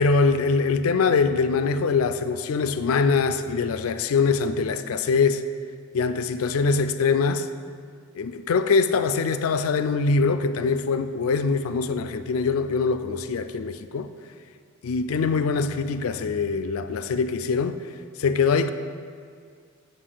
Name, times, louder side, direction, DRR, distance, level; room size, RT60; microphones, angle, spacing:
voice 1, 0.0-5.4 5.9-7.5 8.2-14.1 14.8-17.8 18.2-18.7, left 4 dB, 80° left, 0.4 m, -23 dB
7.9 x 6.4 x 3.9 m
head